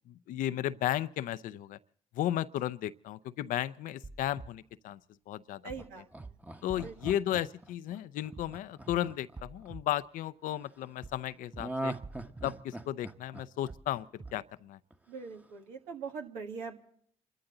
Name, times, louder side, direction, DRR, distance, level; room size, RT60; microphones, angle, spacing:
voice 1, 0.1-1.8 2.1-5.0 5.3-5.6 6.6-11.9 12.4-14.8, left 12 dB, 80° left, 0.6 m, -34 dB
sound 1, 4.0-4.5 5.7-5.9 6.2-6.3 6.7-7.1 8.4-8.6 8.9-9.0 9.4-9.8 11.0-11.2 11.5-11.6 12.0-12.5 13.7-13.9 14.2-14.3, right 3 dB, 35° right, 3.7 m, -46 dB
voice 2, 5.6-6.3 6.8-7.0 15.1-16.8, right 5 dB, 90° right, 1.8 m, -42 dB
Laughter, 5.8-10.0 11.6-14.6 14.9-15.0, right 1 dB, 10° right, 1.1 m, -41 dB
28.0 x 13.0 x 3.9 m
supercardioid pair, 50°, 14 cm